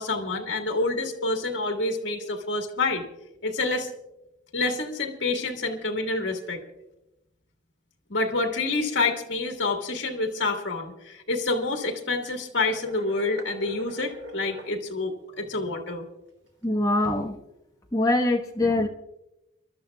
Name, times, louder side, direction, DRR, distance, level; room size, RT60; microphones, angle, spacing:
voice 1, 0.0-3.0 3.4-3.9 4.5-6.6 8.1-16.1, left 3 dB, 75° left, 3 dB, 1.7 m, -28 dB
sound 1, 12.6-14.7, left 1 dB, 80° right, 1.8 m, -41 dB
voice 2, 16.6-17.4 17.9-18.9, left 2 dB, 20° left, 0 dB, 1.2 m, -23 dB
30.0 x 12.5 x 2.3 m, 0.93 s
head